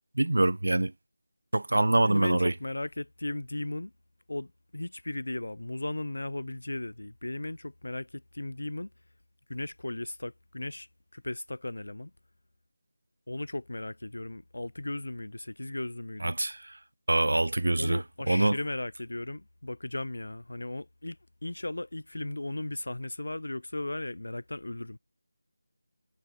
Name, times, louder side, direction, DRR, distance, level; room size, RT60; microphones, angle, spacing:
voice 1, 0.2-0.9 1.5-2.5 16.2-16.6 17.1-18.0 18.3-18.6, right 2 dB, 80° right, 0.6 m, -24 dB
voice 2, 2.0-3.9 4.3-8.9 9.5-10.9 11.1-12.1 13.3-16.3 17.8-21.2 21.4-25.0, left 2 dB, 80° left, 6.7 m, -36 dB
figure-of-eight pair, 170°, 0 cm